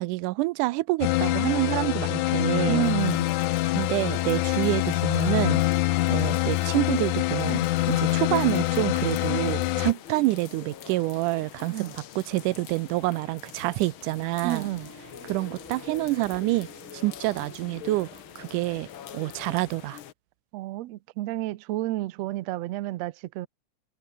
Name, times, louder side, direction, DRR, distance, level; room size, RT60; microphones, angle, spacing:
voice 1, 0.0-2.9 3.7-5.6 6.1-14.7 15.2-16.7 16.9-18.1 18.4-18.9 19.1-20.0, right 20 dB, 90° right, 2.1 m, -27 dB
sound 1, 1.0-9.9, left 17 dB, 80° left, 2.2 m, -25 dB
voice 2, 2.7-3.3 11.7-12.0 14.4-14.9 20.5-23.5, right 16 dB, 75° right, 1.7 m, -30 dB
sound 2, 2.8-20.1, left 10 dB, 55° left, 1.5 m, -45 dB
sound 3, 14.5-19.8, equal, 5° left, 6.0 m, -49 dB
omnidirectional pair, 3.5 m